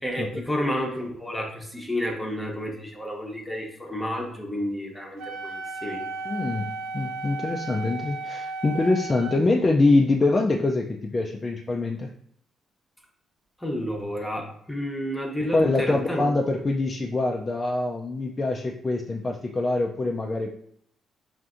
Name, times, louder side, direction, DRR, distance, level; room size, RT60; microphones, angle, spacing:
voice 1, 0.0-6.0 13.6-16.3, equal, 5° left, 0 dB, 0.8 m, -31 dB
Wind instrument woodwind instrument, 5.2-9.4, right 3 dB, 90° right, 0.4 m, -34 dB
voice 2, 6.3-12.1 15.4-20.5, left 2 dB, 30° left, 0 dB, 0.4 m, -24 dB
5.5 x 2.5 x 2.5 m, 0.66 s
cardioid pair, 90°, 0 cm